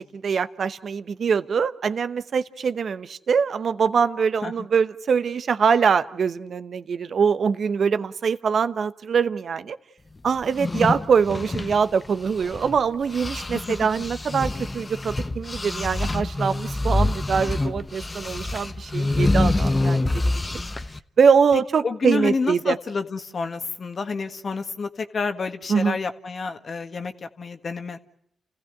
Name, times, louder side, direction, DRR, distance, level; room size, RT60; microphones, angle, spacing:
voice 1, 0.0-9.8 10.2-20.4 21.2-22.8 25.7-26.0, right 6 dB, 60° right, 13 dB, 0.9 m, -23 dB
sound 1, 10.4-12.8 13.1-21.0, left 2 dB, 30° left, 1.0 m, -26 dB
voice 2, 13.5-13.9 21.8-28.0, left 4 dB, 55° left, 8 dB, 1.6 m, -29 dB
28.5 x 15.5 x 9.2 m, 0.74 s
supercardioid pair, 45°, 0 cm